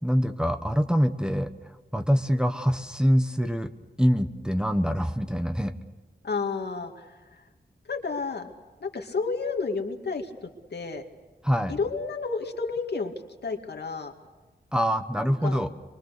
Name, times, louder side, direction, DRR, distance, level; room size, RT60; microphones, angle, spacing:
voice 1, 0.0-1.5 1.9-3.7 4.0-5.7 11.4-11.8 14.7-15.7, equal, 5° right, 6 dB, 1.2 m, -24 dB
voice 2, 6.2-7.4 7.9-8.5 8.8-10.3 10.7-11.0 11.7-13.1 13.4-14.1 15.4-15.6, left 4 dB, 70° left, 4 dB, 2.2 m, -31 dB
25.5 x 23.5 x 6.7 m, 1.3 s
wide cardioid pair, 80°, 18 cm